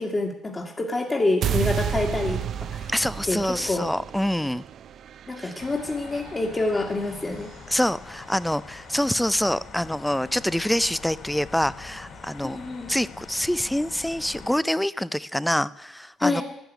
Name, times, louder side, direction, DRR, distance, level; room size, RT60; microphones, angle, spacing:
voice 1, 0.0-2.4 2.7-2.9 3.3-3.9 5.3-7.5 12.4-12.9 16.2-16.4, left 2 dB, 25° left, -1 dB, 1.9 m, -27 dB
sound 1, 1.4-7.6, right 9 dB, 60° right, 0.5 m, -32 dB
voice 2, 2.9-4.6 5.4-5.5 7.7-12.6 12.9-16.4, left 1 dB, 5° left, 18 dB, 0.5 m, -26 dB
sound 2, 5.6-14.6, left 4 dB, 55° left, 4.1 m, -44 dB
11.0 x 10.5 x 9.1 m, 0.82 s
cardioid pair, 110°, 0 cm